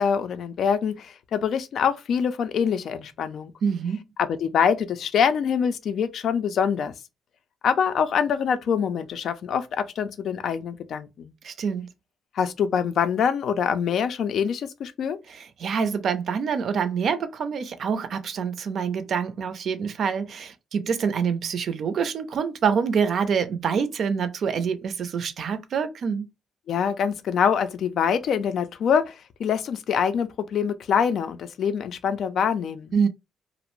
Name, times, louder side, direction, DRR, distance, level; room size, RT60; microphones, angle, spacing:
voice 1, 0.0-3.5 4.2-6.9 7.6-11.3 12.4-15.2 26.7-32.9, left 7 dB, 65° left, 0.4 m, -25 dB
voice 2, 3.6-4.0 11.4-11.9 15.3-26.3 32.9-33.1, right 6 dB, 60° right, 0.4 m, -26 dB
2.5 x 2.0 x 3.0 m
cardioid pair, 90°, 0 cm